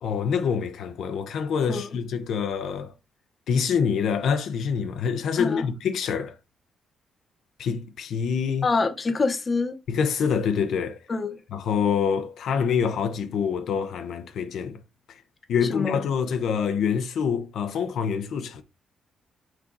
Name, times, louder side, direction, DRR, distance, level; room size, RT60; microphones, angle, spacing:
voice 1, 0.0-2.9 3.5-6.3 7.6-8.7 9.9-11.0 11.5-14.8 15.5-18.6, left 6 dB, 65° left, 0.7 m, -26 dB
voice 2, 8.6-9.8 11.1-11.4 15.7-16.0, left 4 dB, 25° left, 0.9 m, -25 dB
6.2 x 4.3 x 3.9 m
cardioid pair, 160°, 0 cm